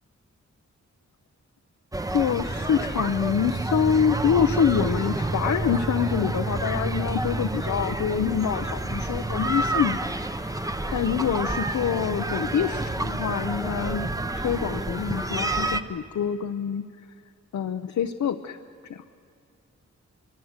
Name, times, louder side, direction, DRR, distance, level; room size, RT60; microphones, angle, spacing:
sound 1, 1.9-15.8, right 2 dB, 10° right, 0.8 m, -29 dB
voice 1, 2.1-10.0 10.9-14.1 14.3-16.8 17.5-18.6 18.9-19.0, left 8 dB, 75° left, 8 dB, 0.8 m, -26 dB
26.0 x 24.5 x 8.1 m, 2.4 s
wide cardioid pair, 115°, 29 cm